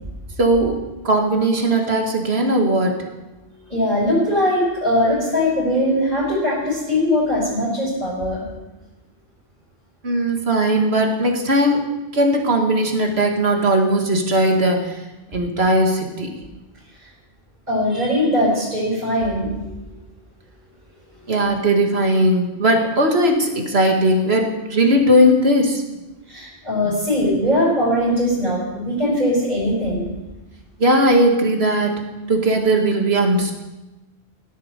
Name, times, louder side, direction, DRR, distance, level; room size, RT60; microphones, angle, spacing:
voice 1, 0.4-0.8 1.0-3.0 10.0-11.9 12.1-15.0 15.3-16.3 21.3-25.8 30.8-32.0 32.3-33.5, right 1 dB, 65° right, 2 dB, 2.2 m, -18 dB
voice 2, 3.7-8.4 17.0-17.1 17.7-19.5 19.8-20.0 26.3-30.1, left 1 dB, 40° right, -9 dB, 5.8 m, -20 dB
16.5 x 8.9 x 6.7 m, 1.1 s
omnidirectional pair, 1.1 m